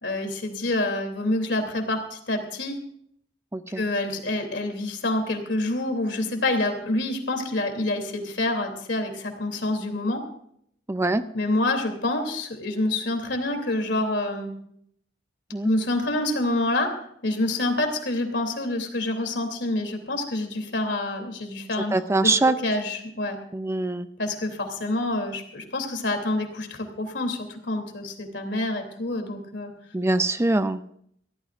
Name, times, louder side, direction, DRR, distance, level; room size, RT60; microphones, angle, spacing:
voice 1, 0.0-2.8 3.8-10.2 11.3-14.5 15.6-16.9 17.2-21.9 22.2-22.3 22.6-23.4 24.2-29.7, left 2 dB, 70° left, 4 dB, 3.0 m, -27 dB
voice 2, 3.5-3.8 10.9-11.2 15.5-15.7 21.9-22.6 23.5-24.1 29.9-30.8, right 2 dB, 15° right, 11 dB, 0.5 m, -23 dB
24.0 x 16.0 x 2.5 m, 0.68 s
head